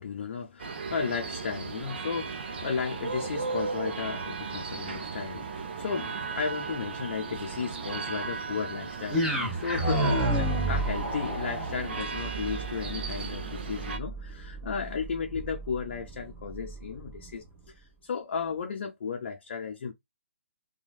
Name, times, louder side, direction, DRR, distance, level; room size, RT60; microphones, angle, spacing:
voice 1, 0.0-17.4 17.7-19.9, left 6 dB, 55° left, 0.6 m, -34 dB
sound 1, 0.6-14.0, right 4 dB, 50° right, 0.6 m, -36 dB
sound 2, 2.8-8.3, right 9 dB, 30° right, 1.4 m, -46 dB
sound 3, 9.1-17.3, right 1 dB, 5° right, 1.1 m, -31 dB
3.0 x 2.3 x 2.3 m
figure-of-eight pair, 135°, 7 cm